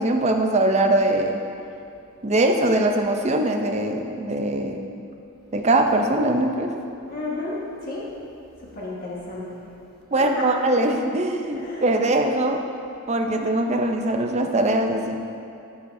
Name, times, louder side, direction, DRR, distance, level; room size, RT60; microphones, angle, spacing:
voice 1, 0.0-1.4 2.2-4.8 5.5-6.7 10.1-12.6 13.1-15.2, right 1 dB, 30° right, 4 dB, 0.6 m, -22 dB
voice 2, 7.1-7.6 7.9-8.0 8.8-9.6 10.1-10.4 11.5-11.9, left 2 dB, 45° left, -6 dB, 1.5 m, -32 dB
9.9 x 9.6 x 2.7 m, 2.6 s
head